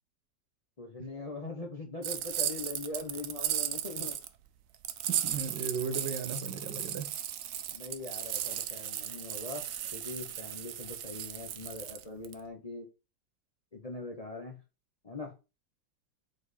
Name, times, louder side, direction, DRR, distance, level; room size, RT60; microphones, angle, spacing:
voice 1, 0.8-4.2 7.7-9.7 9.9-12.9 13.7-14.6 15.0-15.3, left 2 dB, 25° left, 0.8 m, -41 dB
sound 1, 2.0-4.3 4.8-12.3, right 10 dB, 65° right, 0.8 m, -36 dB
voice 2, 5.1-7.1, right 4 dB, 80° right, 1.7 m, -36 dB
4.6 x 4.4 x 4.8 m
omnidirectional pair, 1.9 m